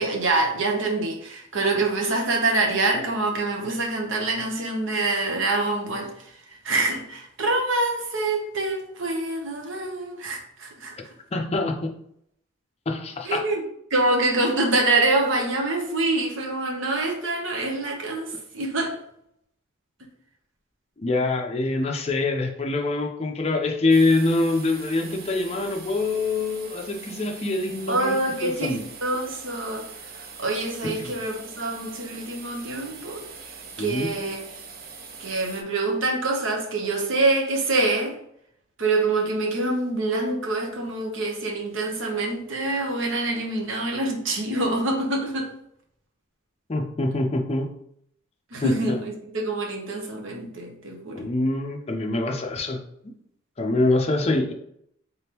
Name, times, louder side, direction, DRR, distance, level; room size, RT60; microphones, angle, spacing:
voice 1, 0.0-11.0 13.2-13.6 13.9-19.0 27.9-29.8 30.1-34.4 35.2-38.1 38.8-45.5 48.5-51.3, right 2 dB, 70° right, 0.8 m, -26 dB
voice 2, 11.3-11.9 12.9-13.4 21.0-28.8 30.8-31.1 33.8-34.1 46.7-47.7 48.6-48.7 51.2-52.8 53.6-54.5, left 2 dB, 30° left, 0.5 m, -25 dB
sound 1, 23.9-35.6, right 5 dB, 45° right, 0.5 m, -42 dB
3.8 x 3.5 x 2.9 m
head